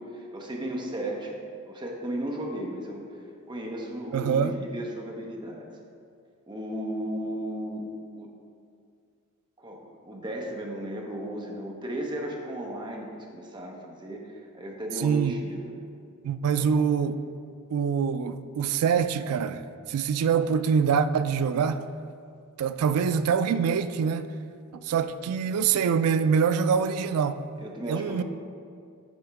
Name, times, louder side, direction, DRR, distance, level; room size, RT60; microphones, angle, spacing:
voice 1, 0.0-1.4 1.7-3.0 3.5-5.7 6.5-7.9 8.1-8.3 9.6-15.7 16.6-16.7 27.6-28.2, right 1 dB, 20° right, 0.8 m, -35 dB
voice 2, 4.1-4.5 15.0-15.4 16.2-17.2 17.7-21.8 22.6-24.3 24.8-27.4 27.9-28.2, right 6 dB, 85° right, 0.3 m, -25 dB
8.1 x 3.5 x 4.7 m
head